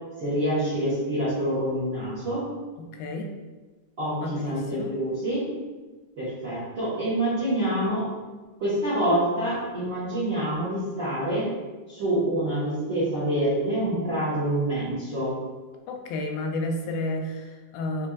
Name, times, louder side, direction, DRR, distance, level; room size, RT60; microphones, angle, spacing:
voice 1, 0.2-2.4 4.0-5.4 6.2-8.1 8.6-11.5 11.9-15.3, right 1 dB, 60° right, -10 dB, 1.2 m, -26 dB
voice 2, 2.8-3.3 4.2-4.9 15.9-18.1, left 2 dB, 85° left, 3 dB, 2.4 m, -31 dB
7.3 x 2.6 x 2.4 m, 1.3 s
omnidirectional pair, 4.1 m